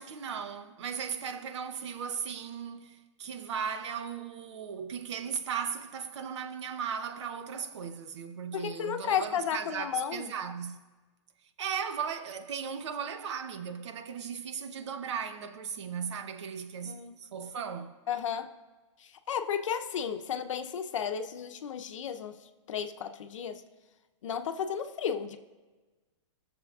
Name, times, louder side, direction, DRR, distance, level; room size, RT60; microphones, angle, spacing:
voice 1, 0.0-10.8 11.6-17.9, right 7 dB, 65° right, 0.8 m, -37 dB
voice 2, 8.5-10.3 16.8-17.2 18.1-18.5 19.0-22.4 22.7-23.6 24.2-25.4, left 8 dB, 85° left, 0.7 m, -33 dB
20.0 x 6.9 x 2.4 m
supercardioid pair, 165°, 16 cm